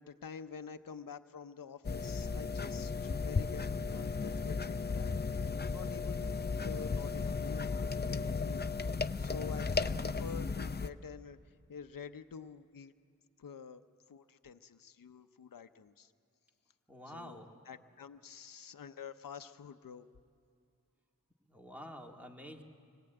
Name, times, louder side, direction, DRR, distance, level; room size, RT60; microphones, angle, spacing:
voice 1, 0.0-6.2 6.6-8.7 9.2-12.9 13.4-13.8 14.1-16.1 17.1-20.1, left 6 dB, 80° left, 9 dB, 0.7 m, -48 dB
sound 1, 1.8-10.9, left 4 dB, 30° left, 0.6 m, -35 dB
voice 2, 16.9-17.5 21.5-22.6, equal, 5° right, 2 dB, 2.0 m, -50 dB
24.5 x 19.0 x 9.0 m, 2.3 s
wide cardioid pair, 75°, 33 cm